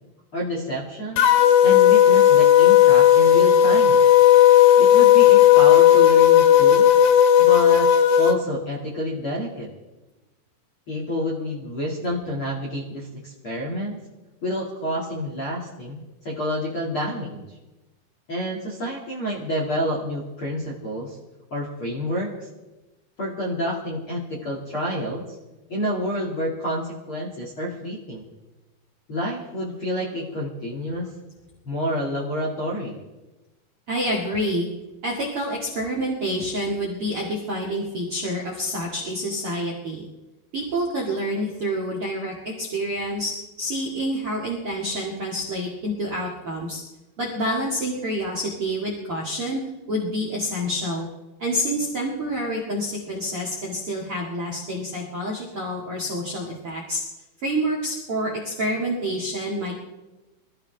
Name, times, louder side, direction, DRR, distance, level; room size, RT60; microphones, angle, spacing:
voice 1, 0.3-1.3 1.6-4.0 4.8-6.9 7.4-7.9 8.2-9.7 10.9-14.0 14.4-17.4 18.3-21.2 21.5-22.5 23.2-25.2 25.7-28.2 29.1-31.1 31.7-33.0, equal, 40° left, -5 dB, 2.0 m, -28 dB
sound 1, 1.2-8.3, left 11 dB, 80° left, 2.2 m, -14 dB
voice 2, 33.9-34.7 35.0-40.0 40.5-43.3 43.6-46.8 47.2-51.1 51.4-57.0 57.4-59.8, equal, 45° right, -3 dB, 1.8 m, -28 dB
24.0 x 14.5 x 3.4 m, 1.1 s
omnidirectional pair, 5.5 m